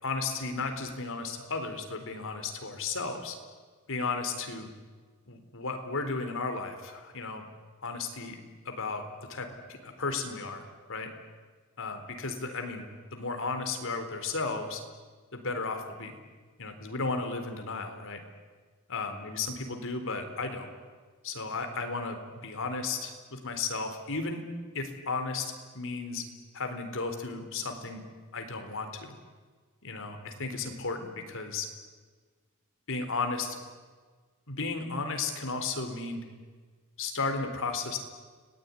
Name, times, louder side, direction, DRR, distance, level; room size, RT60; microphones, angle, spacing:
voice 1, 0.0-3.3 3.9-4.7 5.3-7.4 7.8-8.4 8.7-9.0 9.3-9.5 9.8-11.1 11.8-12.9 13.1-14.8 15.3-16.1 16.6-18.2 18.9-20.7 21.2-24.4 24.7-26.2 26.5-28.0 28.3-29.2 29.8-31.7 32.9-33.6 34.5-36.2 37.0-38.0, left 4 dB, 65° left, 6 dB, 4.1 m, -34 dB
30.0 x 20.0 x 9.9 m, 1.5 s
head